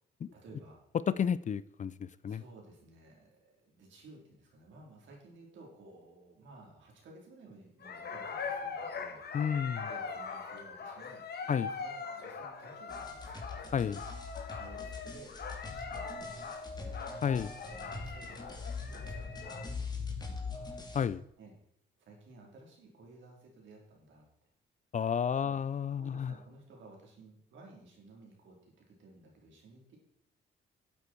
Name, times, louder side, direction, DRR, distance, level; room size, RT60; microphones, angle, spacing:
voice 1, 0.3-0.8 2.3-9.2 9.9-13.5 14.6-15.3 15.6-17.0 17.7-18.4 18.8-20.7 21.4-21.5 22.0-24.3 25.4-25.6 26.0-30.0, right 2 dB, 70° right, 4.1 m, -56 dB
voice 2, 1.2-2.4 9.3-9.9 11.5-11.7 13.7-14.0 17.2-17.5 20.9-21.2 24.9-26.3, left 7 dB, 40° left, 0.5 m, -31 dB
sound 1, 7.8-19.7, left 5 dB, 55° left, 2.0 m, -42 dB
sound 2, 12.9-21.1, left 4 dB, 20° left, 2.4 m, -42 dB
11.5 x 8.5 x 4.6 m
cardioid pair, 90°, 20 cm